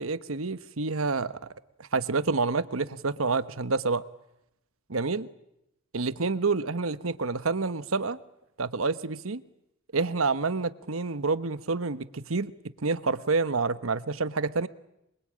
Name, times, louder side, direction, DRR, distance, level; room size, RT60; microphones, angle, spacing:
voice 1, 0.0-1.4 1.9-4.0 4.9-5.3 5.9-8.2 8.6-9.4 9.9-12.5 12.8-14.7, right 4 dB, 90° right, 1.2 m, -28 dB
26.5 x 23.0 x 8.8 m
head